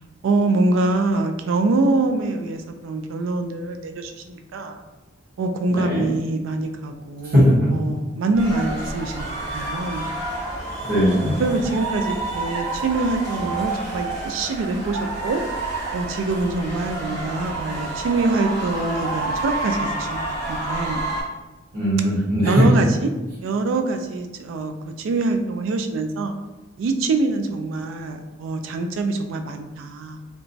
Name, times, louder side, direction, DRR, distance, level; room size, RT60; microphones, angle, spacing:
voice 1, 0.2-4.8 5.4-7.4 7.7-9.3 9.5-10.0 11.4-15.4 15.9-20.2 20.5-21.0 22.5-23.1 23.4-26.4 26.8-30.2, right 3 dB, 75° right, 6 dB, 0.3 m, -24 dB
voice 2, 5.7-6.0 7.2-7.5 10.8-11.3 21.7-22.7, equal, 50° right, -9 dB, 1.1 m, -19 dB
sound 1, 8.3-21.2, right 2 dB, 20° right, 1.2 m, -29 dB
2.9 x 2.2 x 2.6 m, 1.1 s
head